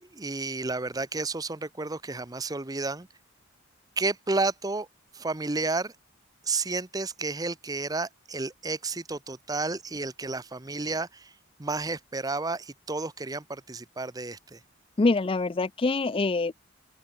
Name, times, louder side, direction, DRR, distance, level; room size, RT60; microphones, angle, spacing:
voice 1, 0.0-3.1 4.0-4.9 5.1-5.9 6.4-11.3 11.6-14.6, right 3 dB, 15° right, 0.7 m, -31 dB
voice 2, 15.0-16.6, left 3 dB, 25° left, 0.4 m, -25 dB
open air
head